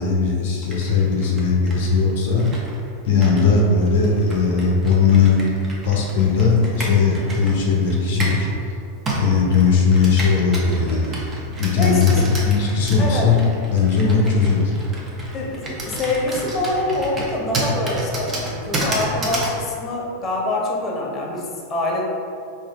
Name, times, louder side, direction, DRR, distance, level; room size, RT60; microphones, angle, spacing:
voice 1, 0.0-2.4 3.0-5.4 5.8-8.5 9.2-11.2 11.6-12.2 12.4-13.4 13.7-14.7, left 5 dB, 70° left, -1 dB, 0.6 m, -18 dB
Computer keyboard, 0.6-8.5 9.1-19.6, right 1 dB, 30° right, 0.8 m, -30 dB
voice 2, 11.8-12.3 13.0-13.3 15.3-22.0, left 2 dB, 30° left, -2 dB, 0.8 m, -25 dB
3.9 x 2.6 x 3.3 m, 2.5 s
hypercardioid pair, 120°, 0 cm